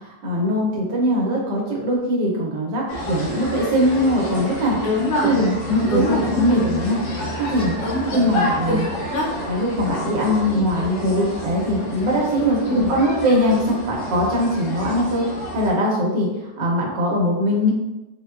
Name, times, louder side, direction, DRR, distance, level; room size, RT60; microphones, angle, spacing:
voice 1, 0.0-4.9 5.2-7.0 7.4-7.7 8.1-8.9 9.5-12.6 12.9-15.2 15.5-17.7, equal, 80° right, -2 dB, 1.4 m, -21 dB
sound 1, 2.9-15.7, equal, 85° left, 1.6 m, -30 dB
voice 2, 4.8-5.3 5.9-6.4 7.8-8.2 8.7-9.3 12.7-12.9, left 1 dB, 60° left, -6 dB, 1.1 m, -23 dB
4.1 x 2.2 x 2.3 m, 1.0 s
omnidirectional pair, 1.9 m